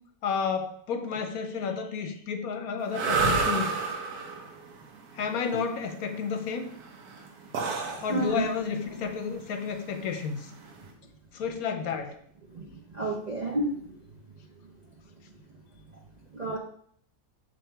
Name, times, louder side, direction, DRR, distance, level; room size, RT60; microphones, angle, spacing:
voice 1, 0.2-3.7 5.2-6.7 8.0-10.5 11.3-12.2, left 6 dB, 75° left, 7 dB, 1.2 m, -31 dB
sound 1, 2.8-10.9, right 4 dB, 85° right, 1.5 m, -31 dB
voice 2, 8.1-8.5 12.5-14.0 16.3-16.6, right 2 dB, 45° right, -1 dB, 0.5 m, -31 dB
7.0 x 3.8 x 4.4 m, 0.63 s
omnidirectional pair, 1.6 m